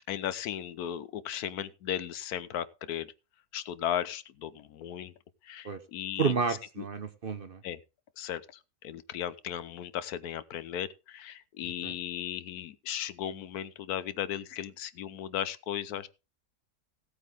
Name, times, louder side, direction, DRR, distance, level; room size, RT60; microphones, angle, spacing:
voice 1, 0.1-3.1 3.5-5.1 5.4-6.3 6.8-6.9 7.6-7.8 8.2-16.1, left 10 dB, 80° left, 1.2 m, -36 dB
voice 2, 6.2-7.6 11.8-11.9, right 5 dB, 45° right, 0.9 m, -30 dB
16.5 x 8.4 x 3.5 m
omnidirectional pair, 1.6 m